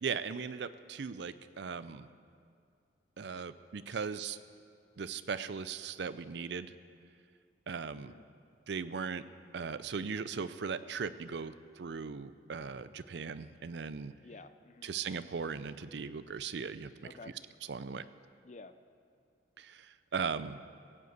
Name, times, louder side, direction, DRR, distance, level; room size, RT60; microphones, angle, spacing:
voice 1, 0.0-2.1 3.2-4.4 5.0-6.7 7.7-8.1 8.7-9.3 9.5-14.1 14.8-16.9 17.7-18.1 19.6-20.6, right 5 dB, 65° right, 14 dB, 0.5 m, -38 dB
voice 2, 7.9-8.3 14.2-14.9 17.0-17.4 18.4-18.8, left 3 dB, 40° left, 11 dB, 0.5 m, -52 dB
16.0 x 7.8 x 8.1 m, 2.3 s
head